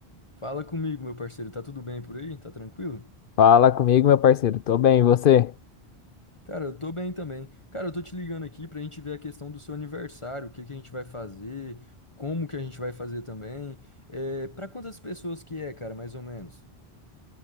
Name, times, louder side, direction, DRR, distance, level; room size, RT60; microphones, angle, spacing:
voice 1, 0.4-3.1 6.5-11.9 12.2-16.6, left 2 dB, 30° left, 1.2 m, -35 dB
voice 2, 3.4-5.5, left 9 dB, 60° left, 0.7 m, -17 dB
omnidirectional pair, 1.1 m